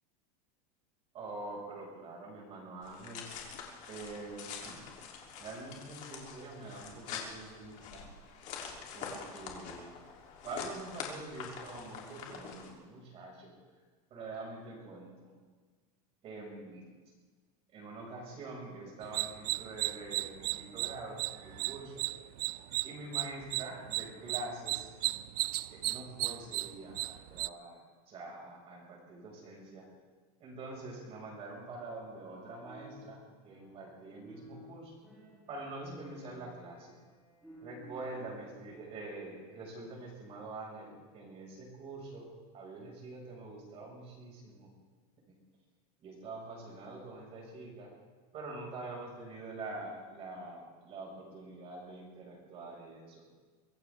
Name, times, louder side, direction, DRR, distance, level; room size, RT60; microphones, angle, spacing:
voice 1, 1.1-3.2 3.9-4.8 5.4-8.1 8.9-10.0 10.4-13.5 14.1-15.3 16.2-16.9 17.7-22.1 22.8-24.8 25.7-27.8 28.1-29.9 30.4-34.9 35.5-36.9 37.6-42.3 42.5-44.7 46.0-47.9 48.3-53.2, right 2 dB, 30° right, -1 dB, 5.3 m, -45 dB
sound 1, 2.8-12.7, left 6 dB, 40° left, 2.9 m, -45 dB
sound 2, 19.0-27.5, right 17 dB, 80° right, 0.5 m, -35 dB
sound 3, 32.6-34.0 34.2-39.5, left 1 dB, ahead, 6.6 m, -55 dB
24.0 x 16.0 x 3.4 m, 1.4 s
supercardioid pair, 160°, 20 cm